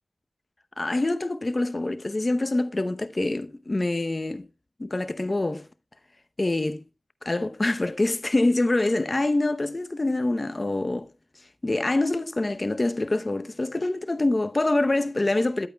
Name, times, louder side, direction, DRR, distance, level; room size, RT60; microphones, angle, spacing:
voice 1, 0.8-4.5 4.8-5.7 6.4-6.8 7.2-11.1 11.6-15.7, left 2 dB, 40° left, 0.8 m, -25 dB
11.5 x 8.3 x 2.3 m
cardioid pair, 45°, 0 cm